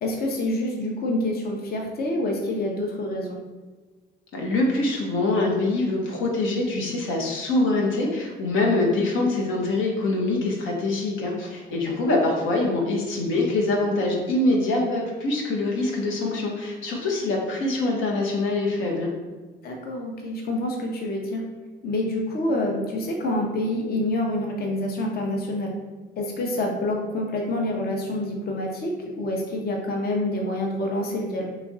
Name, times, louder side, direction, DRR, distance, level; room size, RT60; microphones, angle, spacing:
voice 1, 0.0-3.4 19.6-21.4 21.8-25.7 26.2-31.5, left 1 dB, 50° left, 0 dB, 0.6 m, -27 dB
voice 2, 4.3-19.1, left 2 dB, 85° left, -1 dB, 0.8 m, -24 dB
3.1 x 2.4 x 3.8 m, 1.3 s
cardioid pair, 90°, 20 cm